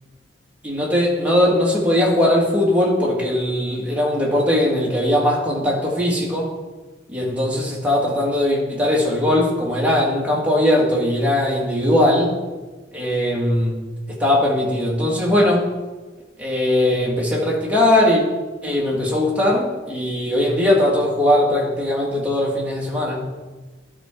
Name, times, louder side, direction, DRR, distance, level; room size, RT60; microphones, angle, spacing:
voice 1, 0.6-6.5 7.1-12.3 12.9-13.8 14.2-15.6 16.4-18.2 18.6-23.2, left 1 dB, 10° right, -4 dB, 1.8 m, -19 dB
12.0 x 4.5 x 3.8 m, 1.2 s
head